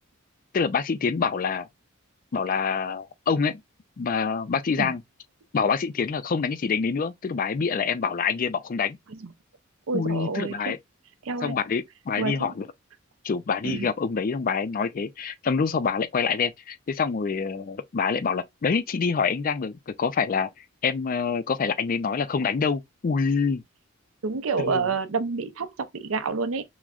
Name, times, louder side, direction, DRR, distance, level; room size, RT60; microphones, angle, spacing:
voice 1, 0.5-1.7 2.3-3.6 4.0-5.0 5.5-9.0 9.9-10.8 11.4-12.7 13.2-23.6 24.6-24.8, left 5 dB, 40° left, 0.4 m, -26 dB
voice 2, 9.9-10.7 11.2-11.5 12.2-12.5 13.6-13.9 24.2-26.6, right 4 dB, 75° right, 0.6 m, -28 dB
6.0 x 2.1 x 2.4 m
head